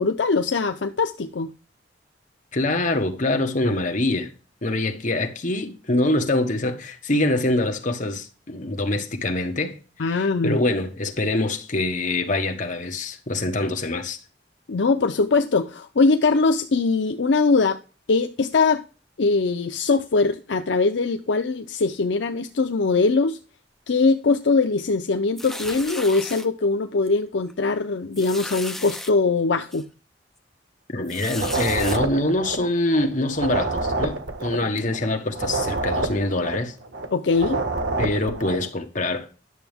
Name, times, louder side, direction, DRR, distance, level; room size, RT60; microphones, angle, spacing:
voice 1, 0.0-1.5 10.0-10.6 14.7-17.8 18.1-18.8 19.2-23.4 23.9-29.8 37.1-37.6, left 3 dB, 70° left, 0.6 m, -21 dB
voice 2, 2.5-4.3 4.6-9.8 10.0-14.2 30.9-36.7 38.0-39.3, left 2 dB, 45° left, 1.4 m, -24 dB
sound 1, 25.4-26.5 27.1-27.2 27.5-27.6 28.1-29.1 29.7-29.8 31.0-32.0, left 1 dB, ahead, 0.7 m, -35 dB
sound 2, 31.3-33.1 33.3-37.1 37.3-38.7, right 2 dB, 85° right, 1.5 m, -27 dB
11.0 x 6.9 x 3.5 m
head